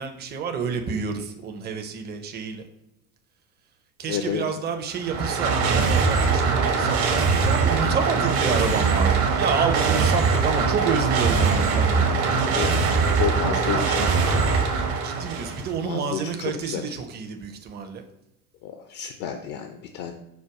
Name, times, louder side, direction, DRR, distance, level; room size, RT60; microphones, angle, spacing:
voice 1, 0.0-2.6 4.0-12.3 15.0-18.0, right 5 dB, 25° right, 5 dB, 0.6 m, -29 dB
voice 2, 4.1-4.4 12.4-12.7 13.2-14.1 15.8-17.0 18.6-20.1, left 8 dB, 50° left, 5 dB, 0.6 m, -30 dB
sound 1, 4.9-15.7, right 5 dB, 55° right, 1.0 m, -22 dB
4.6 x 2.3 x 4.6 m, 0.84 s
hypercardioid pair, 75°, 44 cm